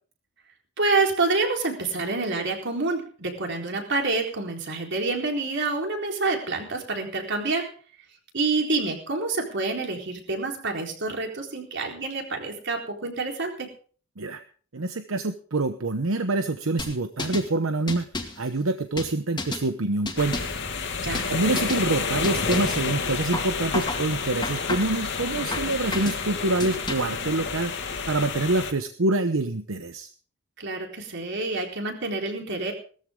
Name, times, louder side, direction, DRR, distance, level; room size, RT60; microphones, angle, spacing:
voice 1, 0.8-7.7 8.3-13.7 21.0-21.3 30.6-32.7, right 3 dB, 60° right, 2 dB, 4.1 m, -27 dB
voice 2, 14.7-18.1 18.4-20.5 21.3-27.7 28.1-30.1, right 2 dB, 85° right, 8 dB, 1.0 m, -26 dB
sound 1, 16.8-17.5 17.9-18.4 19.0-19.7 20.0-20.6 21.1-21.3 21.6-21.9 22.2-22.8 23.3-24.0 24.4-25.0 25.5-26.2 26.6-27.2, left 2 dB, 20° left, 2.2 m, -32 dB
sound 2, 20.2-28.7, left 5 dB, 60° left, 2.5 m, -30 dB
18.5 x 14.0 x 3.7 m, 0.42 s
head